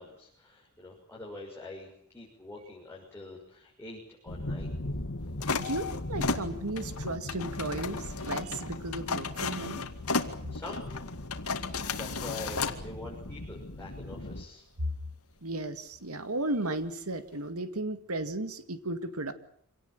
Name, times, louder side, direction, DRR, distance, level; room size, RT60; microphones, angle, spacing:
voice 1, 0.0-4.7 10.5-11.1 11.7-14.7, left 2 dB, 10° left, -4 dB, 6.2 m, -45 dB
sound 1, 4.3-14.4, left 1 dB, 60° left, 1.9 m, -39 dB
sound 2, 5.4-12.8, left 4 dB, 90° left, 2.3 m, -34 dB
voice 2, 5.6-9.9 15.4-19.3, right 2 dB, 75° right, 9 dB, 2.1 m, -35 dB
26.5 x 18.5 x 9.1 m, 0.65 s
head